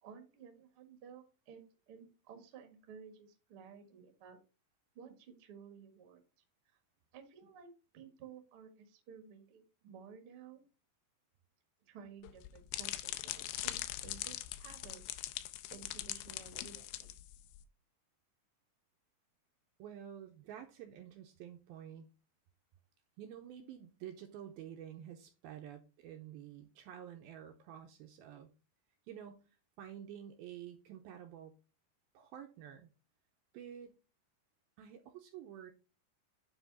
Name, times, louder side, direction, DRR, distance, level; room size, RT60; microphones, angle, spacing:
voice 1, 0.0-4.4 4.9-6.2 7.1-7.7 7.9-10.6 11.9-15.0 15.7-17.1, right 7 dB, 55° right, 1.5 m, -54 dB
sound 1, 12.2-17.6, left 15 dB, 80° left, 2.5 m, -42 dB
voice 2, 19.8-22.1 23.2-28.5 29.1-29.5 29.8-31.5 32.1-32.9 33.5-33.9 34.8-35.7, right 10 dB, 80° right, 2.3 m, -50 dB
9.4 x 3.9 x 4.0 m
omnidirectional pair, 4.8 m